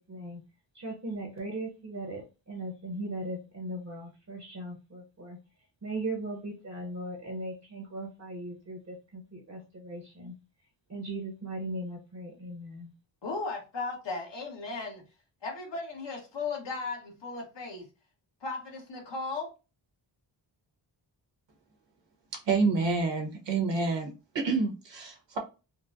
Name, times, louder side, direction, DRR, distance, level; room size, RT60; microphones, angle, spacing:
voice 1, 0.1-0.4 0.7-5.4 5.8-10.3 10.9-12.9, right 1 dB, 35° right, 0.8 m, -38 dB
voice 2, 13.2-15.0 15.4-17.9 18.4-19.5, left 3 dB, 65° left, 1.3 m, -36 dB
voice 3, 22.3-25.4, right 4 dB, 70° right, 1.1 m, -28 dB
4.1 x 2.1 x 2.5 m
wide cardioid pair, 175°, 45 cm